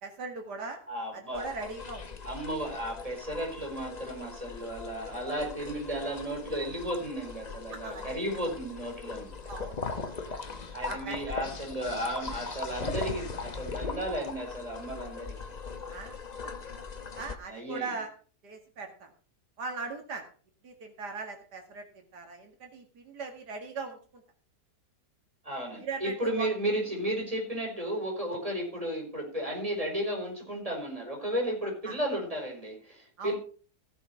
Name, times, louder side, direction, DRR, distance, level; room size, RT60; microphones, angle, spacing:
voice 1, 0.0-0.8 1.1-2.1 7.7-8.4 9.5-9.8 10.3-10.4 10.8-11.4 15.9-16.5 17.2-18.1 18.4-19.1 19.6-20.2 20.6-24.2 25.7-26.5 31.8-32.0 33.2-33.3, right 4 dB, 85° right, 3 dB, 2.5 m, -40 dB
voice 2, 0.9-1.5 2.2-9.3 10.7-15.3 17.5-17.9 25.4-33.4, right 1 dB, 20° right, 0 dB, 5.0 m, -34 dB
sound 1, 1.3-17.4, left 4 dB, 30° left, 0.9 m, -40 dB
16.5 x 6.9 x 4.6 m, 0.39 s
omnidirectional pair, 1.7 m